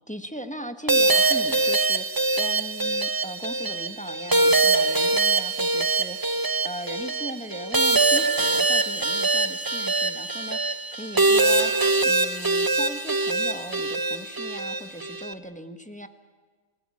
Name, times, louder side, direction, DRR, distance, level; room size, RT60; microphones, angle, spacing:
voice 1, 0.1-16.1, equal, 5° left, 8 dB, 1.2 m, -38 dB
sound 1, 0.9-15.3, right 3 dB, 20° right, 0.7 m, -23 dB
28.0 x 17.5 x 9.7 m, 1.5 s
omnidirectional pair, 1.5 m